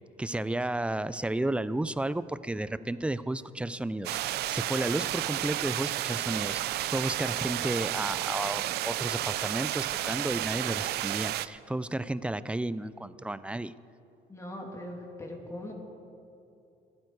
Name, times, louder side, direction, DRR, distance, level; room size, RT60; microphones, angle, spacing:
voice 1, 0.2-13.7, right 1 dB, 5° right, 15 dB, 0.4 m, -32 dB
sound 1, 4.0-11.5, right 14 dB, 75° right, 0.5 m, -32 dB
voice 2, 14.3-15.7, left 1 dB, 15° left, 0 dB, 2.7 m, -40 dB
28.5 x 9.5 x 4.7 m, 2.7 s
cardioid pair, 110°, 17 cm